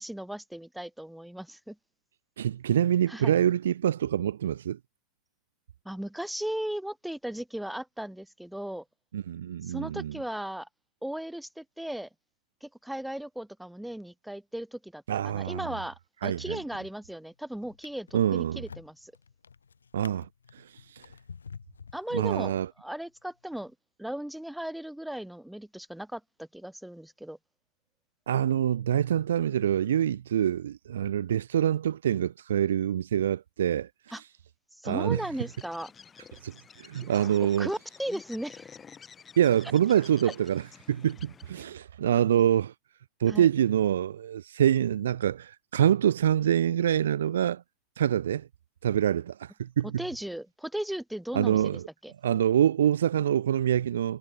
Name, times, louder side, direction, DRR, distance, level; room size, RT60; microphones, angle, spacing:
voice 1, 0.0-1.8 3.1-3.4 5.8-8.8 9.6-10.7 11.0-12.1 12.6-19.1 21.9-27.4 28.9-29.0 34.1-34.2 34.8-35.9 37.4-38.7 40.2-40.3 43.3-43.5 50.0-52.1, right 1 dB, ahead, 2.6 m, -37 dB
voice 2, 2.4-4.8 9.1-10.1 15.1-15.7 16.2-16.6 18.1-18.6 19.9-20.3 20.5-20.6 20.9-21.0 22.1-22.7 28.3-33.9 34.8-35.2 36.4-36.5 36.8-37.7 39.4-40.6 40.9-42.7 43.2-47.6 48.0-48.5 48.8-49.9 51.3-51.8 52.2-54.2, right 10 dB, 65° right, 0.5 m, -25 dB
Drawer open or close, 16.6-17.1 17.6-22.8 23.5-23.7, left 6 dB, 70° left, 2.0 m, -49 dB
Bird, 35.2-41.8, left 6 dB, 20° left, 4.1 m, -50 dB
figure-of-eight pair, 90°, 0 cm